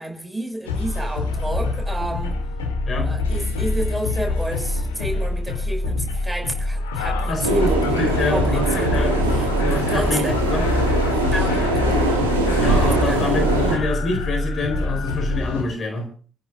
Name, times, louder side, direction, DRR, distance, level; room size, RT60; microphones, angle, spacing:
voice 1, 0.0-2.4 3.0-7.8 8.3-9.0 9.3-10.4 11.1-11.7 13.0-13.2, right 1 dB, 5° right, 2 dB, 6.1 m, -30 dB
sound 1, 0.7-15.6, left 3 dB, 75° left, 2.6 m, -25 dB
voice 2, 7.3-10.7 12.6-16.1, left 2 dB, 40° left, 5 dB, 4.4 m, -26 dB
sound 2, 7.4-13.8, right 2 dB, 80° right, 2.2 m, -21 dB
29.5 x 15.5 x 2.6 m, 0.41 s
figure-of-eight pair, 45°, 0 cm